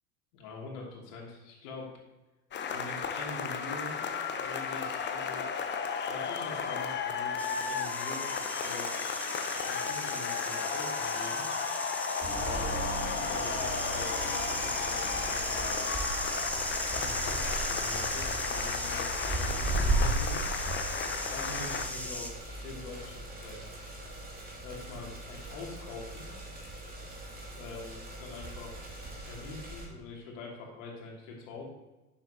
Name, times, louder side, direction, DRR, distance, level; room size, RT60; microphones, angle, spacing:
voice 1, 0.3-1.9 2.6-4.0 4.3-5.5 6.1-8.9 9.7-11.5 12.2-12.8 13.2-16.0 16.8-20.4 21.3-23.7 24.6-26.3 27.5-28.9 29.2-31.6, left 3 dB, 60° left, -2 dB, 2.9 m, -44 dB
sound 1, 2.5-21.8, left 6 dB, 25° left, 0.9 m, -34 dB
sound 2, 7.4-22.3, left 1 dB, 5° left, 1.1 m, -37 dB
sound 3, 12.2-29.8, right 2 dB, 20° right, 2.7 m, -37 dB
11.0 x 7.2 x 2.9 m, 1.1 s
figure-of-eight pair, 80°, 44 cm